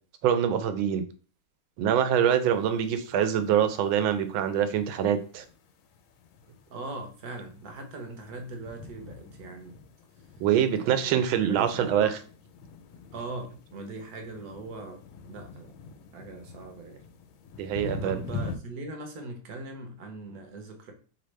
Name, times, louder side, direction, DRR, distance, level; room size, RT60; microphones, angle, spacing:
voice 1, 0.2-1.0 1.8-5.4 10.4-12.1 17.6-18.2, right 9 dB, 85° right, 9 dB, 1.4 m, -24 dB
sound 1, 2.4-18.6, left 4 dB, 85° left, 1.4 m, -45 dB
voice 2, 6.7-9.8 10.7-12.2 13.1-15.7 16.1-17.0 18.0-20.9, right 2 dB, 60° right, 4 dB, 1.1 m, -40 dB
4.1 x 3.3 x 3.1 m, 0.39 s
omnidirectional pair, 2.1 m